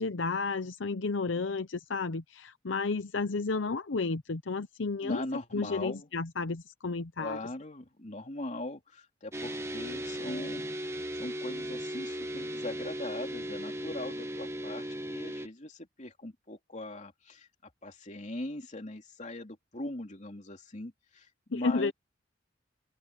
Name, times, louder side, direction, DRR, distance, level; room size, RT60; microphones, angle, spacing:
voice 1, 0.0-5.2 5.5-7.4 21.5-21.9, left 4 dB, 70° left, 0.8 m, -32 dB
voice 2, 5.0-6.1 7.2-10.6 11.2-21.9, left 1 dB, 40° left, 3.1 m, -40 dB
sound 1, 9.3-15.5, equal, 15° right, 1.3 m, -37 dB
open air
head